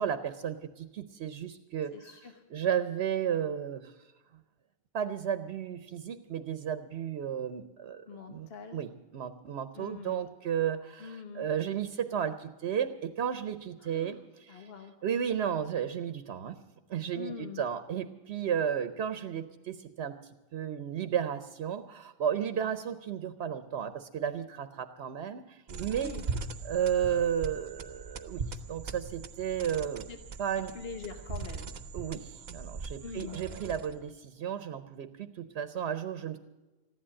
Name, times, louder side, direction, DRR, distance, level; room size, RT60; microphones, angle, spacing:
voice 1, 0.0-2.1 2.5-3.9 4.9-14.7 15.0-16.6 16.9-20.2 20.5-26.1 26.6-28.4 28.7-30.1 30.4-30.7 31.9-36.4, right 8 dB, 80° right, 11 dB, 1.0 m, -33 dB
voice 2, 1.9-2.3 8.1-8.8 9.7-10.3 11.0-11.5 13.8-14.2 14.5-14.9 17.1-17.6 25.9-26.2 30.1-30.2 30.7-31.7 33.0-33.4, left 5 dB, 70° left, 5 dB, 1.2 m, -43 dB
sound 1, 25.7-34.1, right 4 dB, 50° right, 0.8 m, -40 dB
15.0 x 11.0 x 7.6 m, 1.1 s
omnidirectional pair, 1.1 m